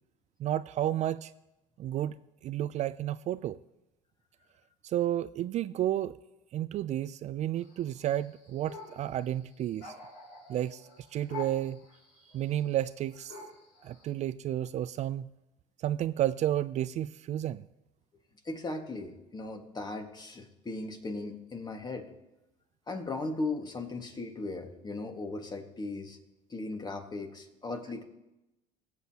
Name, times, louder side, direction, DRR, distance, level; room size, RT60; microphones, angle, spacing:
voice 1, 0.4-1.3 1.8-2.1 2.4-3.6 4.8-6.1 6.5-9.9 10.5-10.8 11.1-11.8 12.3-13.4 13.8-15.2 15.8-17.6, right 12 dB, 50° right, 15 dB, 0.4 m, -31 dB
sound 1, 7.6-14.1, left 4 dB, 80° left, 3.3 m, -48 dB
voice 2, 18.5-22.1 22.9-26.2 26.5-28.0, left 2 dB, 25° left, 5 dB, 1.7 m, -37 dB
20.5 x 7.7 x 2.9 m, 0.96 s
supercardioid pair, 90°, 15 cm